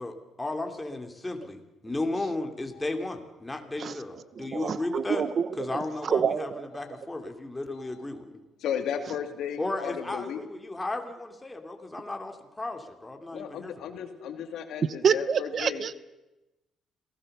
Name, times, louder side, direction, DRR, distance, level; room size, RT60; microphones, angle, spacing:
voice 1, 0.0-5.2 5.6-8.4 9.6-13.7, left 2 dB, 15° left, 5 dB, 3.1 m, -34 dB
voice 2, 2.7-3.1 3.8-4.0 5.7-6.0 6.7-7.0 7.7-8.0 8.6-10.4 13.3-15.9, left 8 dB, 80° left, 6 dB, 2.6 m, -35 dB
voice 3, 4.4-5.7 6.0-6.6 15.0-15.9, right 7 dB, 55° right, 17 dB, 0.9 m, -27 dB
27.0 x 17.5 x 6.9 m, 1.0 s
cardioid pair, 90°, 0 cm